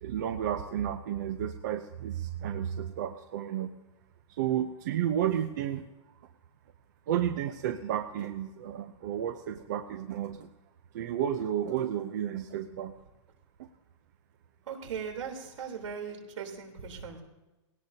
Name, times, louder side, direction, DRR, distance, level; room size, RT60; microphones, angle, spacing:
voice 1, 0.0-3.7 4.4-5.8 7.1-10.5 10.9-12.9, right 10 dB, 35° right, 8 dB, 0.6 m, -32 dB
voice 2, 14.7-17.2, right 6 dB, 80° right, 3 dB, 3.6 m, -39 dB
20.0 x 17.5 x 2.8 m, 1.1 s
supercardioid pair, 180°, 16 cm